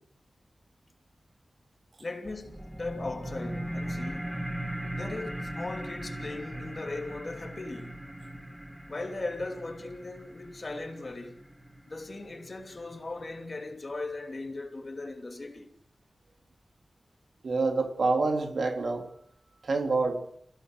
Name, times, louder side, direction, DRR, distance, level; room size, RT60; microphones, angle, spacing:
voice 1, 2.0-4.4 4.9-8.0 8.9-11.4 11.9-15.7, left 2 dB, 40° left, 2.8 m, -38 dB
sound 1, 2.2-13.2, right 1 dB, 5° right, 1.6 m, -39 dB
voice 2, 17.4-19.1 19.6-20.2, right 3 dB, 75° right, 3.1 m, -27 dB
28.5 x 16.0 x 6.4 m
wide cardioid pair, 105°, 0 cm